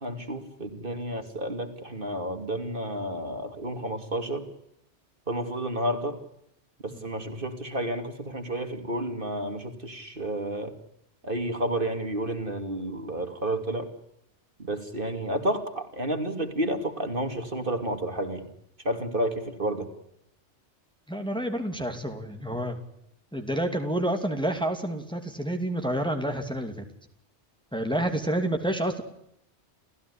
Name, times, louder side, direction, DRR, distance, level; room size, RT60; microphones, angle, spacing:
voice 1, 0.0-4.5 5.3-6.2 6.8-10.7 11.2-13.9 14.6-18.5 18.8-19.9, right 1 dB, 50° right, 7 dB, 2.8 m, -31 dB
voice 2, 21.1-22.8 23.3-26.8 27.7-29.0, right 1 dB, 5° left, 5 dB, 2.6 m, -29 dB
29.5 x 15.5 x 9.9 m, 0.76 s
omnidirectional pair, 1.2 m